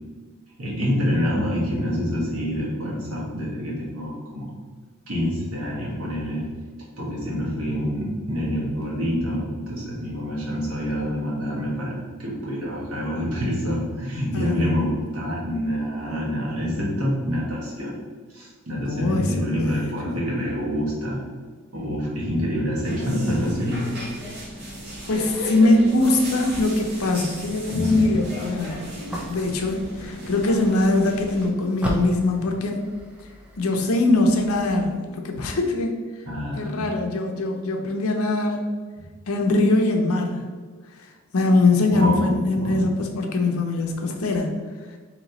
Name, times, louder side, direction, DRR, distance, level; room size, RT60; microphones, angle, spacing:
voice 1, 0.6-4.5 5.1-6.5 7.0-17.9 18.3-21.2 21.7-23.9 27.7-28.2 36.2-36.9 39.0-39.1 41.9-42.8, equal, 85° right, -5 dB, 1.4 m, -27 dB
voice 2, 7.3-7.6 14.3-14.9 18.9-20.0 25.1-28.9 29.2-32.8 33.6-36.0 36.6-38.6 39.3-40.4 41.0-41.1 41.3-44.5, left 2 dB, 80° left, 3 dB, 0.6 m, -22 dB
sound 1, 22.8-31.5, equal, 50° right, 1.1 m, -35 dB
sound 2, 26.4-35.0, equal, 5° right, 0.4 m, -38 dB
3.1 x 3.0 x 4.0 m, 1.5 s
head